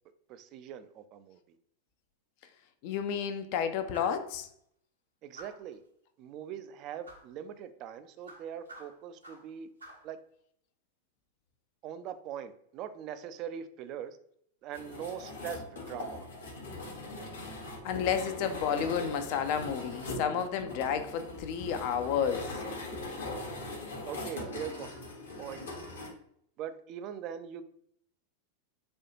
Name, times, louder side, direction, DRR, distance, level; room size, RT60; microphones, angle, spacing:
voice 1, 0.3-1.6 5.2-5.8 6.2-9.7 10.0-10.2 11.8-14.2 14.6-16.3 24.1-25.0 25.3-25.7 26.6-27.6, right 9 dB, 40° right, 0.3 m, -42 dB
voice 2, 2.8-4.5 17.8-22.6, left 7 dB, 45° left, 0.4 m, -31 dB
sound 1, 3.9-4.3 5.3-5.7 7.0-7.3 8.2-9.5 9.8-10.1, right 1 dB, 80° right, 1.0 m, -50 dB
sound 2, 14.7-26.1, left 2 dB, 65° left, 1.0 m, -41 dB
4.2 x 2.3 x 2.8 m
figure-of-eight pair, 90°, 0 cm